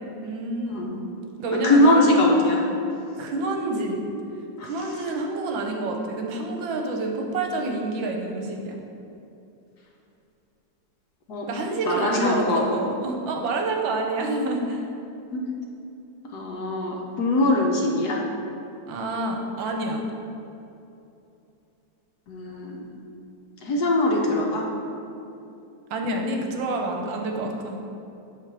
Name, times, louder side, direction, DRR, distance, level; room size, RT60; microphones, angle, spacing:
voice 1, 0.2-0.9 1.4-2.1 3.2-4.0 4.6-8.8 11.5-14.9 17.4-17.5 18.9-20.0 25.9-27.8, right 2 dB, 80° right, 2 dB, 1.5 m, -28 dB
voice 2, 1.6-2.6 4.6-4.7 11.3-11.5 11.9-12.6 15.3-15.4 16.3-18.2 22.3-22.8 23.6-24.7, left 1 dB, 65° left, -1 dB, 1.2 m, -21 dB
8.1 x 3.2 x 6.1 m, 2.8 s
omnidirectional pair, 2.1 m